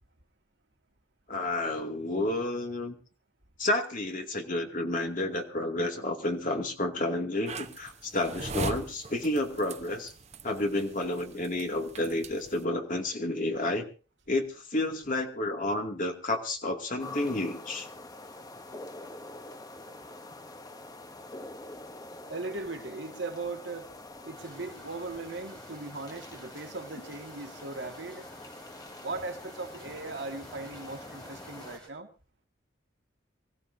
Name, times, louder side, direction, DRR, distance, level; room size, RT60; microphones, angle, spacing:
voice 1, 1.3-3.0 3.6-10.1 10.4-13.8 14.3-17.9, left 1 dB, 45° left, 2.4 m, -30 dB
sound 1, 7.5-12.6, right 3 dB, 35° right, 1.0 m, -40 dB
sound 2, 17.0-31.8, left 2 dB, 20° left, 1.0 m, -46 dB
voice 2, 22.3-23.9 24.2-28.3 29.0-32.1, right 3 dB, 75° right, 1.9 m, -38 dB
sound 3, 24.3-31.9, right 1 dB, 5° left, 6.2 m, -54 dB
25.0 x 15.5 x 2.7 m
head